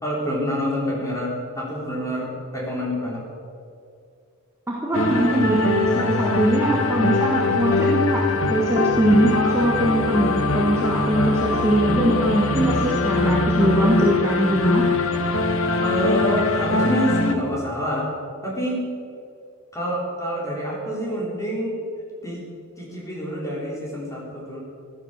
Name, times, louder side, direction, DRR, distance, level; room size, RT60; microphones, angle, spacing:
voice 1, 0.0-3.2 15.8-18.1 18.4-18.8 19.7-21.8 22.2-22.5 22.8-24.6, equal, 15° left, -4 dB, 4.0 m, -27 dB
voice 2, 4.7-14.9, right 1 dB, 10° right, -4 dB, 1.7 m, -21 dB
sound 1, 4.9-17.4, left 3 dB, 65° left, 1.3 m, -22 dB
15.5 x 12.0 x 6.8 m, 2.4 s
head